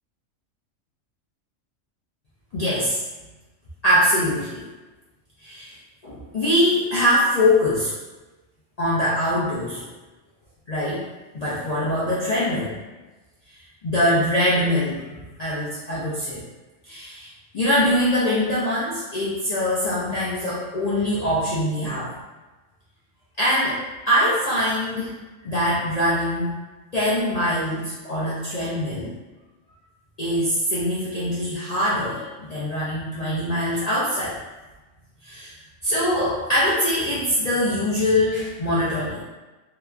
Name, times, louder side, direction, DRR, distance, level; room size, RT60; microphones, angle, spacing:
voice 1, 2.5-3.0 3.8-4.6 5.4-5.8 6.0-7.9 8.8-9.9 10.7-11.1 11.3-12.8 13.5-16.4 16.8-22.1 23.4-23.8 24.1-25.2 25.4-26.5 26.9-29.1 30.2-34.4 35.2-35.6 35.8-39.2, left 1 dB, 70° left, -9 dB, 0.3 m, -23 dB
2.9 x 2.2 x 2.3 m, 1.2 s
omnidirectional pair, 1.4 m